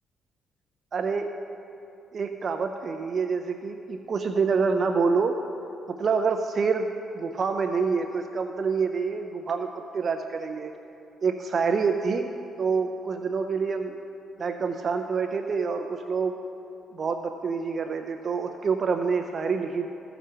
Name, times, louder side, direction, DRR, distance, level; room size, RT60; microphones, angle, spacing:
voice 1, 0.9-1.3 2.1-5.4 5.9-10.7 11.2-12.3 12.6-14.0 14.4-16.3 16.9-19.9, right 5 dB, 45° right, 6 dB, 0.4 m, -27 dB
14.5 x 5.0 x 5.6 m, 2.8 s
cardioid pair, 90°, 0 cm